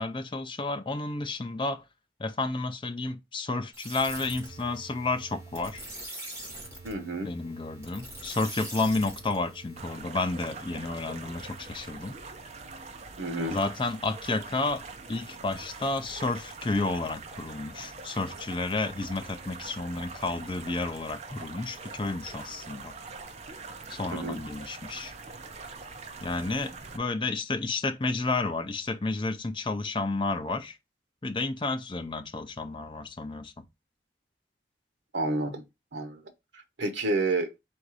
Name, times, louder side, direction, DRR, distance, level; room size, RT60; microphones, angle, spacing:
voice 1, 0.0-1.8 2.2-5.9 7.2-12.2 13.5-14.8 15.1-22.9 23.9-25.1 26.2-30.8 31.2-33.6, left 3 dB, 25° left, 0.5 m, -31 dB
sound 1, 3.7-10.1, right 1 dB, 15° right, 1.7 m, -43 dB
voice 2, 6.8-7.3 13.2-13.6 24.1-24.4 35.1-35.6 35.9-36.2 36.8-37.5, right 2 dB, 85° right, 0.9 m, -29 dB
sound 2, 9.8-27.0, right 4 dB, 35° right, 0.5 m, -43 dB
3.8 x 2.6 x 4.7 m
head